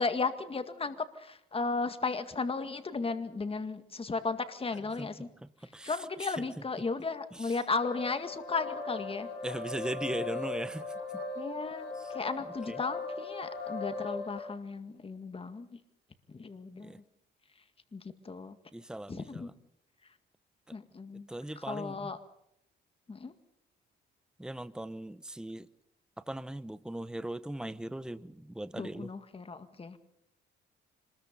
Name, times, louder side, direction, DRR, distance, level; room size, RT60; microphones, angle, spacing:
voice 1, 0.0-5.3 5.8-9.3 11.4-15.8 16.3-17.0 17.9-18.6 19.1-19.5 20.7-21.3 21.6-22.2 23.1-23.3 28.7-30.0, left 4 dB, 30° left, 2.0 m, -35 dB
voice 2, 5.7-6.3 7.4-7.5 9.4-11.2 12.7-12.8 16.8-17.0 18.7-19.5 20.7-20.8 21.3-22.1 24.4-25.7 26.2-29.1, right 1 dB, 5° right, 0.9 m, -39 dB
sound 1, 7.8-14.4, left 3 dB, 90° left, 6.9 m, -38 dB
26.0 x 21.0 x 5.4 m
cardioid pair, 90°, 20 cm